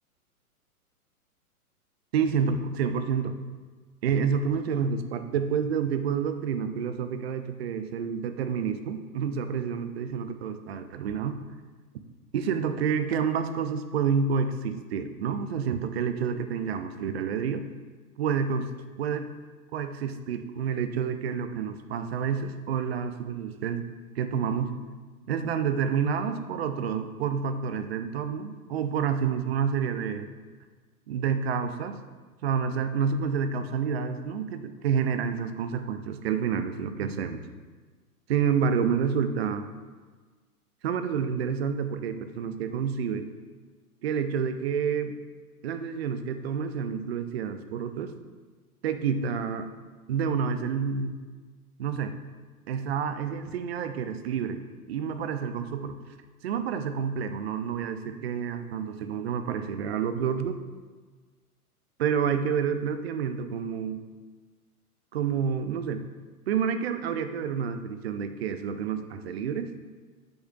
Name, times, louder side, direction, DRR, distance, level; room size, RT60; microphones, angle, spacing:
voice 1, 2.1-3.4 4.0-11.4 12.3-17.6 18.2-18.7 19.0-19.3 19.7-23.9 24.2-24.7 25.3-30.3 31.1-32.0 32.4-37.4 38.3-39.7 40.8-43.3 44.0-45.2 45.6-48.1 48.8-49.7 50.1-51.2 51.8-52.1 52.7-56.0 56.4-60.6 62.0-64.0 65.1-66.1 66.5-69.7, right 7 dB, 45° right, 9 dB, 0.6 m, -29 dB
9.8 x 7.9 x 2.3 m, 1.4 s
figure-of-eight pair, 110°, 45 cm